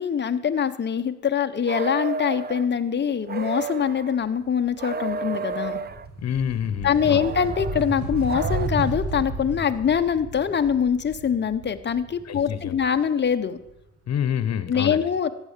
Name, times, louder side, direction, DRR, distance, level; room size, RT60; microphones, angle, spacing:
voice 1, 0.0-5.8 6.8-13.6 14.7-15.3, left 7 dB, 35° left, 8 dB, 1.1 m, -24 dB
sound 1, 1.7-2.7 3.3-4.2 4.8-6.1 7.1-8.7, right 5 dB, 30° right, 0.8 m, -32 dB
sound 2, 4.2-4.4 4.7-13.6, right 2 dB, 50° right, 3.4 m, -33 dB
voice 2, 6.2-7.2 12.2-12.8 14.1-15.1, left 9 dB, 60° left, 14 dB, 1.3 m, -27 dB
14.0 x 9.1 x 7.5 m, 0.87 s
cardioid pair, 90°, 30 cm